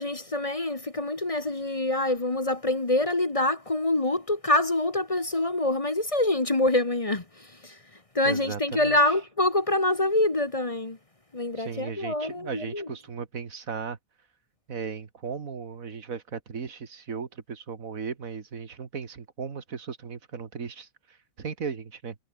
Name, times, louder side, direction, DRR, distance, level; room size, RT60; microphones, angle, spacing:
voice 1, 0.0-11.0 11.3-12.9, left 2 dB, 25° left, 1.4 m, -26 dB
voice 2, 8.3-9.0 11.6-14.0 14.7-20.9 21.4-22.2, right 5 dB, 85° right, 2.2 m, -36 dB
omnidirectional pair, 1.4 m